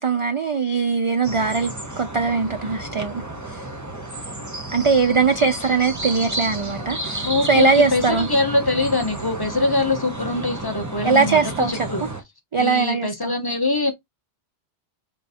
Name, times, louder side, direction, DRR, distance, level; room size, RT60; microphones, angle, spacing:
voice 1, 0.0-1.7 2.0-3.6 4.7-8.3 11.0-11.7 12.5-13.3, right 4 dB, 55° right, 0.3 m, -21 dB
sound 1, 1.2-12.2, right 2 dB, 20° right, 0.8 m, -32 dB
voice 2, 7.2-12.1 12.6-13.9, left 2 dB, 25° left, 0.8 m, -23 dB
5.2 x 3.4 x 2.7 m
omnidirectional pair, 1.1 m